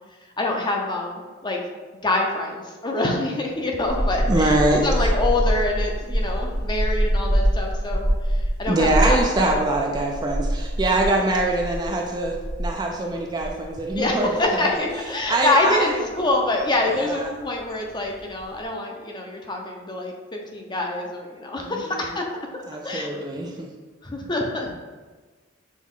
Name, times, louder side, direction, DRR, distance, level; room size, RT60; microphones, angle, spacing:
voice 1, 0.4-1.6 2.0-9.5 14.0-22.2 22.8-23.2 24.0-24.8, left 2 dB, 20° left, 0 dB, 0.5 m, -26 dB
sound 1, 3.8-18.6, equal, 75° right, 1.5 m, -26 dB
voice 2, 4.3-5.2 8.7-14.7 15.3-16.0 16.9-17.3 21.6-22.1 22.7-23.7, right 2 dB, 20° right, 1 dB, 0.3 m, -24 dB
6.2 x 2.4 x 3.6 m, 1.3 s
head